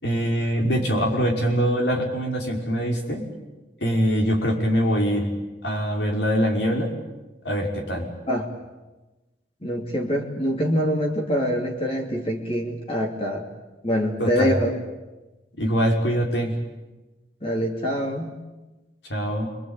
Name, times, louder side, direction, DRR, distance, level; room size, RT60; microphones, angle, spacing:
voice 1, 0.0-3.3 3.8-5.3 5.6-6.9 7.4-8.1 14.2-14.6 15.6-16.5 19.1-19.5, equal, 75° left, 1 dB, 5.6 m, -23 dB
voice 2, 9.6-13.4 13.8-14.7 17.4-18.3, equal, 30° left, 1 dB, 2.8 m, -25 dB
28.5 x 23.0 x 9.0 m, 1.1 s
head